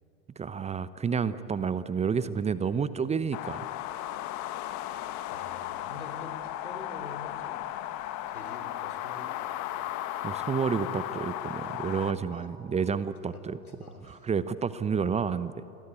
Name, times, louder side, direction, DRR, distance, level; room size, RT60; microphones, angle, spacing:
voice 1, 0.4-3.7 10.2-13.6 14.1-15.6, right 6 dB, 15° right, 15 dB, 0.8 m, -30 dB
sound 1, 3.3-12.1, left 14 dB, 40° left, 1.4 m, -36 dB
sound 2, 3.6-12.9, equal, ahead, 7.5 m, -51 dB
voice 2, 5.3-7.7 7.9-9.9 12.3-12.5 13.2-14.3, left 2 dB, 85° left, 6 dB, 3.6 m, -47 dB
29.0 x 23.0 x 8.3 m, 3.0 s
figure-of-eight pair, 80°, 42 cm